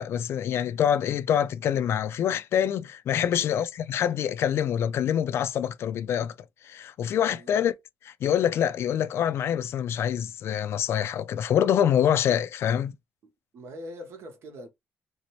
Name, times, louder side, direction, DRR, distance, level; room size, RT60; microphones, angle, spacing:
voice 1, 0.0-6.3 6.6-7.7 8.1-12.9, left 9 dB, 65° left, 0.3 m, -25 dB
voice 2, 7.3-7.6 13.5-14.7, equal, 70° right, 0.9 m, -43 dB
2.6 x 2.0 x 2.9 m
cardioid pair, 75°, 5 cm